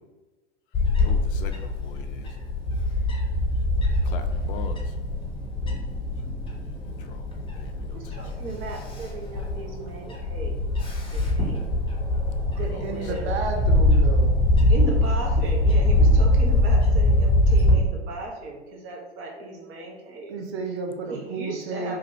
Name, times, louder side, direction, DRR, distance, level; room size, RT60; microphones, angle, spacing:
Bird / Wind, 0.7-17.7, left 1 dB, 15° left, 0.9 m, -23 dB
voice 1, 1.0-2.3 3.8-4.8 7.0-8.0 12.4-12.9, left 7 dB, 50° left, 7 dB, 0.4 m, -42 dB
voice 2, 7.9-10.6 11.0-11.7 12.5-13.3 14.7-20.4 20.7-20.8 21.1-22.0, right 2 dB, 40° right, 0 dB, 0.9 m, -36 dB
voice 3, 12.6-14.3 20.3-22.0, right 3 dB, 70° right, 2 dB, 0.8 m, -32 dB
2.9 x 2.3 x 3.6 m, 1.2 s
hypercardioid pair, 90°, 34 cm